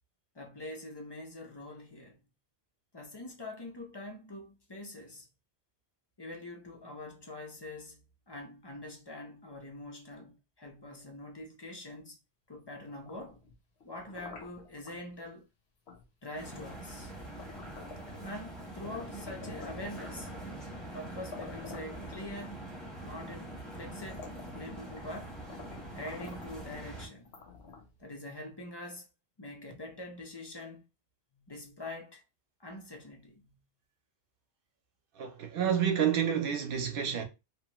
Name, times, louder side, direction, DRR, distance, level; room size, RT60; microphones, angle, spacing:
voice 1, 0.3-2.2 2.9-5.3 6.2-12.2 12.5-13.4 13.8-15.4 16.2-17.1 18.2-20.3 20.9-22.7 23.0-25.4 25.9-27.3 28.0-29.1 29.4-30.8 31.3-32.2 32.6-33.5, left 1 dB, 30° left, 0.5 m, -44 dB
sound 1, 12.9-15.0 15.9-16.1 16.4-18.5 18.8-20.5 21.0-21.1 21.3-22.8 23.5-23.6 23.9-25.2 25.5-26.6 27.2-28.0, left 4 dB, 75° left, 1.0 m, -50 dB
sound 2, 16.3-27.1, right 1 dB, ahead, 1.0 m, -44 dB
voice 2, 35.2-37.2, right 8 dB, 60° right, 0.8 m, -29 dB
2.9 x 2.2 x 2.9 m
omnidirectional pair, 1.1 m